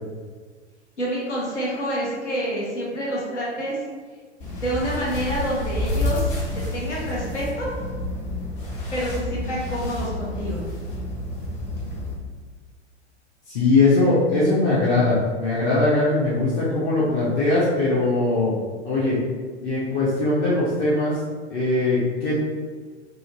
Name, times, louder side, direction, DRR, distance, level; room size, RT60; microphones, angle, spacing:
voice 1, 1.0-3.8 4.6-6.3 6.5-7.7 8.9-10.6, equal, 80° left, -6 dB, 0.8 m, -27 dB
sound 1, 4.4-12.1, left 1 dB, 50° left, 0.9 m, -29 dB
voice 2, 13.5-18.6 18.8-19.2 19.6-21.2 21.5-22.4, left 2 dB, 20° left, -8 dB, 0.4 m, -21 dB
2.4 x 2.3 x 2.8 m, 1.5 s
figure-of-eight pair, 95°, 35 cm